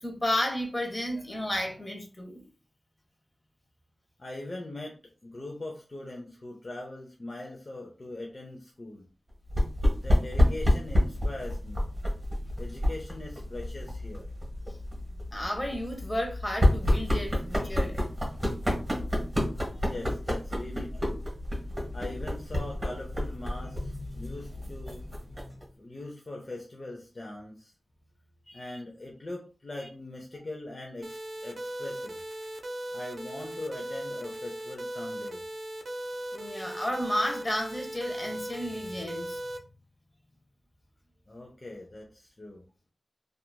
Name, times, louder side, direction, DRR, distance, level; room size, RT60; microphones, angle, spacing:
voice 1, 0.0-2.4 15.3-18.0 28.5-28.7 36.3-39.4, left 1 dB, 20° left, 0.9 m, -32 dB
voice 2, 4.2-9.1 10.0-11.9 12.6-14.3 19.8-21.2 21.9-25.0 25.8-27.7 28.5-32.2 32.9-35.4 41.3-42.7, left 2 dB, 45° left, 0.6 m, -41 dB
sound 1, 9.5-25.6, left 1 dB, 25° right, 1.2 m, -29 dB
sound 2, 31.0-39.6, right 1 dB, 65° right, 0.5 m, -38 dB
2.8 x 2.4 x 2.2 m
cardioid pair, 50°, 0 cm